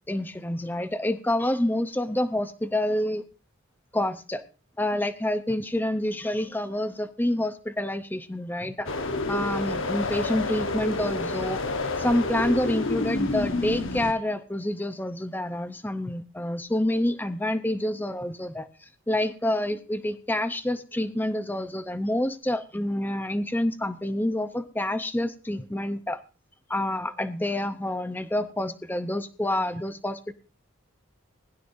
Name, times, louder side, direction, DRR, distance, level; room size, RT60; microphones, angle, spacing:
voice 1, 0.1-3.2 3.9-4.4 4.8-8.9 9.3-11.6 12.0-26.2 26.7-30.3, left 1 dB, 10° left, 9 dB, 0.6 m, -28 dB
sound 1, 8.9-14.1, left 2 dB, 65° left, 1.0 m, -29 dB
20.0 x 11.0 x 2.6 m, 0.34 s
head